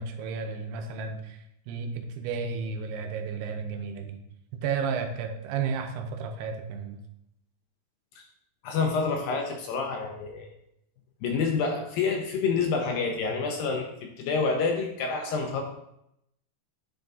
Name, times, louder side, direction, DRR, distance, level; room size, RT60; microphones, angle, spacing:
voice 1, 0.0-1.4 1.7-4.2 4.5-7.0, right 5 dB, 85° right, 4 dB, 2.7 m, -32 dB
voice 2, 8.6-10.5 11.2-15.6, left 4 dB, 75° left, 3 dB, 2.2 m, -28 dB
9.6 x 3.9 x 3.5 m, 0.79 s
omnidirectional pair, 4.6 m